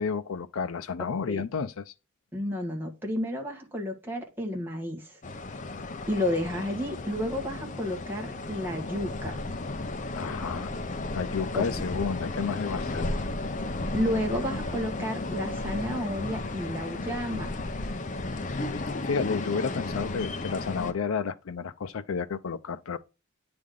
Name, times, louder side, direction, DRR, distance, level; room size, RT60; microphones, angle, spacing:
voice 1, 0.0-1.9 10.1-10.7 11.1-13.1 18.7-23.0, left 5 dB, 80° left, 0.5 m, -31 dB
voice 2, 2.3-5.1 6.1-9.4 11.5-11.6 13.9-17.5, left 1 dB, 10° right, 1.5 m, -31 dB
sound 1, 5.2-20.9, left 2 dB, 35° left, 0.6 m, -34 dB
9.3 x 3.4 x 3.7 m
head